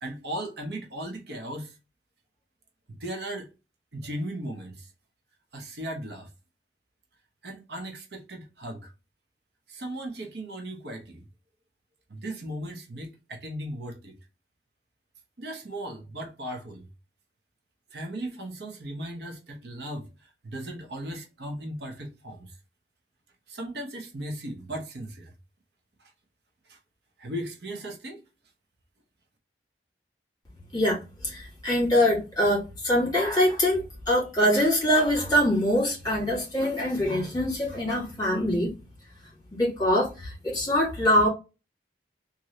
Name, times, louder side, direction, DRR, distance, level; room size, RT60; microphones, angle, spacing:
voice 1, 0.0-1.8 2.9-3.5 3.9-4.9 5.5-6.3 7.4-8.9 9.7-11.3 12.1-14.2 15.4-16.9 17.9-22.5 23.5-25.3 26.7-26.8 27.2-28.2, right 1 dB, 70° right, 0.8 m, -37 dB
voice 2, 30.7-38.7 39.5-41.3, equal, 20° left, 1.6 m, -24 dB
3.0 x 2.6 x 2.7 m
head